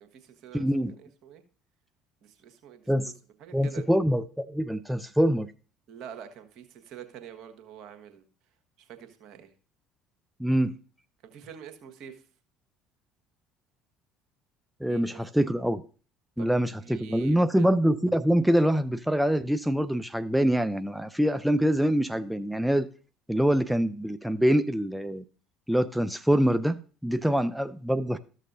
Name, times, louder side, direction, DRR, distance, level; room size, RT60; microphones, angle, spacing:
voice 1, 0.0-1.4 2.2-2.9 3.4-3.8 5.9-8.2 8.8-9.5 11.2-12.2 14.8-15.1 15.4-15.5 16.4-16.5 16.8-17.7 27.3-27.5, right 9 dB, 60° right, 1.3 m, -46 dB
voice 2, 0.5-1.0 2.9-3.1 3.5-5.5 10.4-10.7 14.8-15.8 16.4-22.9 23.3-25.2 25.7-28.2, equal, 5° right, 0.4 m, -25 dB
13.5 x 6.5 x 2.6 m
hypercardioid pair, 65°, 0 cm